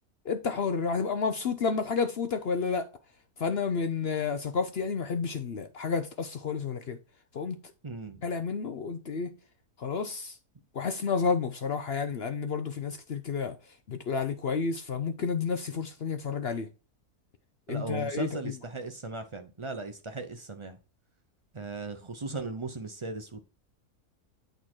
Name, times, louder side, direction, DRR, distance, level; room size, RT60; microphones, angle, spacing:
voice 1, 0.2-2.9 3.4-7.0 7.3-7.6 8.2-9.3 9.8-10.4 10.7-13.6 13.9-16.7 17.7-18.5, left 5 dB, 60° left, 0.7 m, -30 dB
voice 2, 7.8-8.2 17.7-20.8 21.5-23.4, right 3 dB, 45° right, 0.4 m, -37 dB
8.6 x 3.9 x 4.5 m
omnidirectional pair, 1.7 m